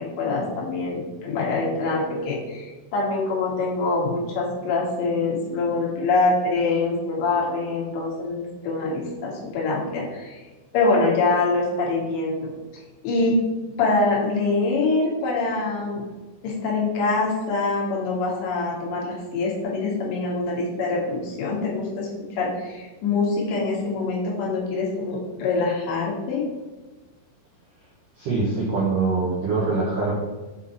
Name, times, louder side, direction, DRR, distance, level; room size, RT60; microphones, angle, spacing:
voice 1, 0.0-10.4 10.7-12.5 13.0-13.4 13.8-16.0 16.4-26.4, left 3 dB, 65° left, -4 dB, 3.7 m, -24 dB
voice 2, 28.1-30.1, right 3 dB, 85° right, -5 dB, 1.8 m, -23 dB
8.0 x 3.9 x 4.4 m, 1.2 s
omnidirectional pair, 5.6 m